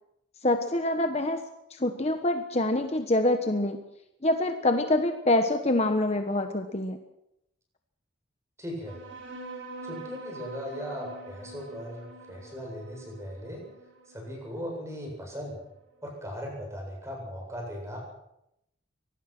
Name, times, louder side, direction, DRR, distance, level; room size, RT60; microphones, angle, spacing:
voice 1, 0.4-1.4 1.7-3.8 4.2-7.0, left 1 dB, 35° left, 6 dB, 1.2 m, -25 dB
voice 2, 8.6-9.0 9.8-13.6 14.1-15.6 16.0-18.0, equal, 15° right, 0 dB, 7.9 m, -38 dB
sound 1, 8.8-15.8, right 3 dB, 75° right, 4.2 m, -45 dB
24.5 x 18.0 x 6.2 m, 0.83 s
head